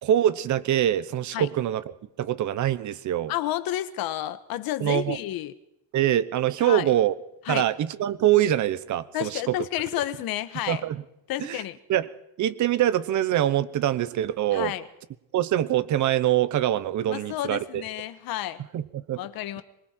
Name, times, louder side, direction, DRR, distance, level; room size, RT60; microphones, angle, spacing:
voice 1, 0.0-3.3 4.8-5.2 5.9-7.1 7.5-9.6 10.7-11.0 11.4-11.6 11.9-12.1 12.4-14.7 15.3-17.8 18.7-19.2, right 12 dB, 45° right, 15 dB, 1.1 m, -24 dB
voice 2, 3.3-5.5 6.6-6.9 7.5-7.6 9.1-10.8 11.3-11.8 14.5-14.9 17.1-18.6 19.2-19.6, left 13 dB, 60° left, 12 dB, 1.5 m, -30 dB
25.0 x 22.5 x 4.6 m, 0.80 s
cardioid pair, 170°, 41 cm